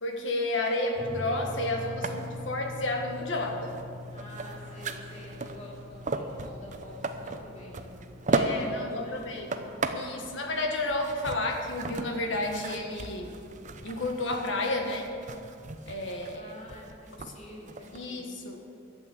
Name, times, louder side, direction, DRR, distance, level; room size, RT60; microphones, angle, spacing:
voice 1, 0.0-3.8 8.3-13.4 13.8-15.1 15.9-16.5 17.9-18.6, left 2 dB, 70° left, 2 dB, 1.7 m, -31 dB
sound 1, 0.9-9.9, left 2 dB, 5° left, 3.3 m, -43 dB
sound 2, 2.0-18.1, right 3 dB, 40° right, 0.7 m, -37 dB
voice 2, 4.1-7.9 8.3-9.2 16.3-18.3, left 1 dB, 35° left, -5 dB, 2.6 m, -47 dB
12.5 x 8.1 x 8.0 m, 2.5 s
head